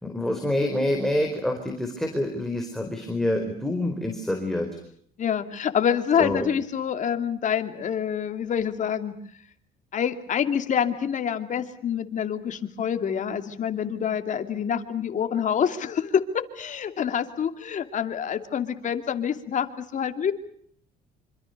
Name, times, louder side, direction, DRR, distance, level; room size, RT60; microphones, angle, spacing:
voice 1, 0.0-4.7 6.2-6.5, left 1 dB, ahead, 3 dB, 4.5 m, -27 dB
voice 2, 5.2-9.2 9.9-20.3, left 8 dB, 50° left, 8 dB, 2.8 m, -26 dB
26.5 x 26.5 x 6.8 m, 0.63 s
cardioid pair, 110°, 17 cm